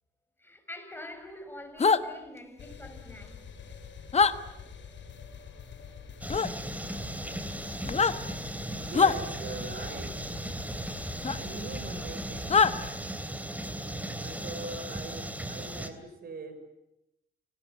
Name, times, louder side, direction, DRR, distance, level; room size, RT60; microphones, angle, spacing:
voice 1, 0.4-3.4, left 1 dB, 10° left, 6.3 m, -45 dB
sound 1, 1.8-2.0 4.1-4.3 6.3-6.5 7.8-8.2 8.9-9.2 11.2-11.4 12.5-12.7, left 5 dB, 35° left, 1.3 m, -22 dB
sound 2, 2.6-13.0, left 6 dB, 65° left, 7.0 m, -46 dB
sound 3, 6.2-15.9, right 1 dB, 5° right, 3.0 m, -37 dB
voice 2, 8.8-10.1 11.3-12.6 14.2-16.6, right 3 dB, 50° right, 5.9 m, -41 dB
28.5 x 19.0 x 9.5 m
cardioid pair, 90°, 20 cm